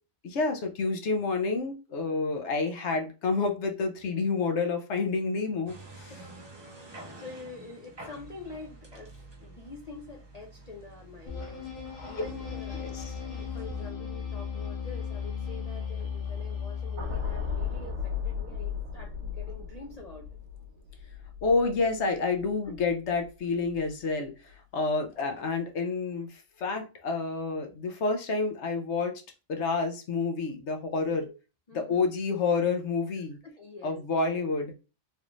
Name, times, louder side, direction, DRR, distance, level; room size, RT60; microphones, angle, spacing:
voice 1, 0.2-6.1 12.7-13.1 21.4-29.1 29.5-31.3 31.7-33.4 33.8-34.7, left 4 dB, 65° left, 5 dB, 0.9 m, -29 dB
sound 1, 5.6-13.9, right 2 dB, 45° right, 0.3 m, -49 dB
voice 2, 6.8-9.1 9.4-13.0 13.3-20.3 21.9-22.0 22.6-22.7 31.1-31.4 31.7-32.1 33.4-34.0, left 3 dB, 85° left, 2 dB, 0.3 m, -46 dB
sound 2, 11.3-17.8, left 6 dB, 45° left, 1.2 m, -36 dB
sound 3, 17.0-23.3 23.6-23.9, left 6 dB, 60° right, 1.2 m, -36 dB
3.2 x 2.5 x 3.0 m, 0.31 s
omnidirectional pair, 1.4 m